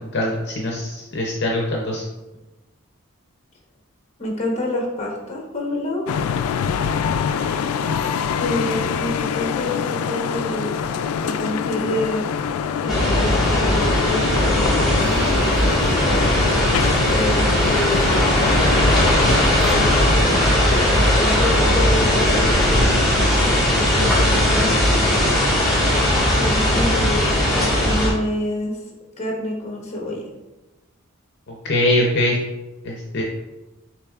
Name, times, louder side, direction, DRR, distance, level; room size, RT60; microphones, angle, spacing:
voice 1, 0.1-2.0 31.7-32.4 32.8-33.2, left 1 dB, 50° left, -2 dB, 0.7 m, -22 dB
voice 2, 4.2-6.1 8.4-12.2 12.8-16.3 17.1-18.7 20.9-22.5 23.7-24.7 26.3-28.8 29.2-30.2, left 1 dB, 30° left, -1 dB, 0.9 m, -28 dB
sound 1, 6.1-20.2, left 7 dB, 85° left, 0.3 m, -25 dB
sound 2, 12.9-28.1, left 1 dB, ahead, 1.5 m, -18 dB
6.7 x 3.1 x 2.4 m, 1.1 s
head